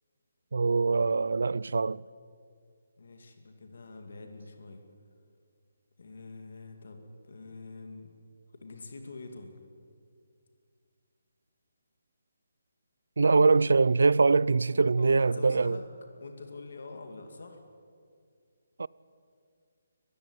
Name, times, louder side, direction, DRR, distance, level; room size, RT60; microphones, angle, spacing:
voice 1, 0.5-2.0 13.2-15.8 18.8-18.9, right 4 dB, 70° right, 0.4 m, -23 dB
voice 2, 3.0-4.8 6.0-8.1 8.6-9.5 13.3-13.6 15.0-15.9 16.2-17.6, left 3 dB, 50° left, 2.3 m, -45 dB
21.5 x 15.0 x 9.8 m
hypercardioid pair, 180°, 0 cm